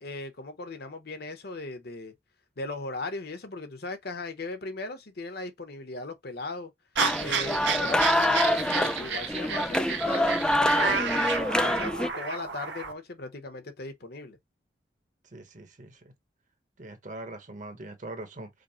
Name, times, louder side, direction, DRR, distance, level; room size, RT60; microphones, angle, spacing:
voice 1, 0.0-2.1 2.6-6.7 7.2-14.4, left 2 dB, 60° left, 0.9 m, -38 dB
sound 1, 7.0-12.1, left 1 dB, 5° left, 0.3 m, -26 dB
sound 2, 7.0-12.9, right 5 dB, 80° right, 0.9 m, -31 dB
voice 2, 15.3-16.1 16.8-18.5, right 2 dB, 45° right, 1.1 m, -42 dB
5.1 x 2.1 x 4.3 m
head